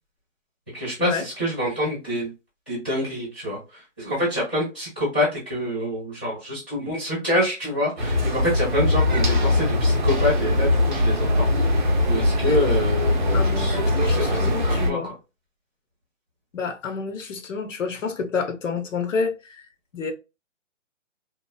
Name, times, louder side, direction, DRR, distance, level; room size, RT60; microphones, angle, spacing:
voice 1, 0.7-2.3 2.7-15.0, left 1 dB, 10° left, 0.6 m, -27 dB
sound 1, 8.0-14.9, left 1 dB, 40° right, 0.6 m, -21 dB
voice 2, 13.3-15.1 16.5-19.7 19.9-20.1, left 5 dB, 75° left, 0.8 m, -29 dB
2.9 x 2.0 x 2.2 m
hypercardioid pair, 170°, 38 cm